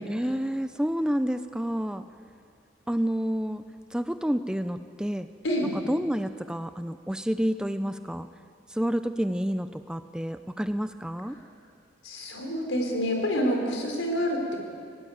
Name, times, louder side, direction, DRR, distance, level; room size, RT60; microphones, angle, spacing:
voice 1, 0.1-2.0 2.9-3.6 3.9-5.3 5.6-8.3 8.7-11.3, equal, 5° right, 10 dB, 0.5 m, -29 dB
voice 2, 12.0-14.6, equal, 80° left, 2 dB, 4.5 m, -27 dB
20.0 x 17.5 x 8.7 m, 2.4 s
head